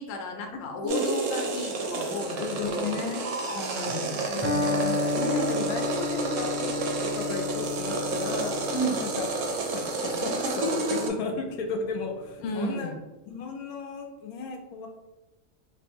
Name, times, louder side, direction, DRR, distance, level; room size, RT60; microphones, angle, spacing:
voice 1, 0.0-3.0 3.5-4.2 8.7-9.0 12.4-13.0, equal, 65° left, 3 dB, 0.9 m, -33 dB
voice 2, 0.6-1.1 2.4-3.2 3.9-6.9 7.1-9.2 9.7-12.9 13.3-14.9, left 4 dB, 85° left, 3 dB, 1.1 m, -34 dB
sound 1, 0.9-11.1, right 3 dB, 65° right, 0.9 m, -30 dB
Electric guitar, 4.4-12.3, left 3 dB, 10° right, 0.6 m, -33 dB
3.1 x 2.5 x 3.4 m, 1.0 s
omnidirectional pair, 1.5 m